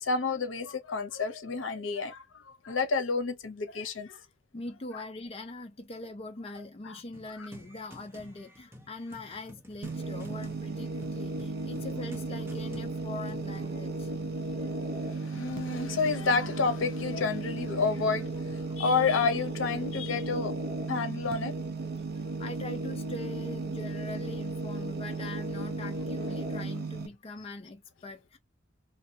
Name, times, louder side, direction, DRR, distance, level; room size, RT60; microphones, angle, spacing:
voice 1, 0.0-4.2 6.8-7.0 7.4-7.5 14.5-14.6 14.9-20.5 20.9-21.6, left 4 dB, 80° left, 0.7 m, -30 dB
voice 2, 4.5-14.1 22.4-28.4, left 2 dB, 30° left, 0.5 m, -42 dB
sound 1, 7.1-13.9, equal, 15° right, 0.9 m, -52 dB
sound 2, 9.8-27.1, right 3 dB, 55° right, 0.6 m, -35 dB
2.7 x 2.2 x 2.7 m
head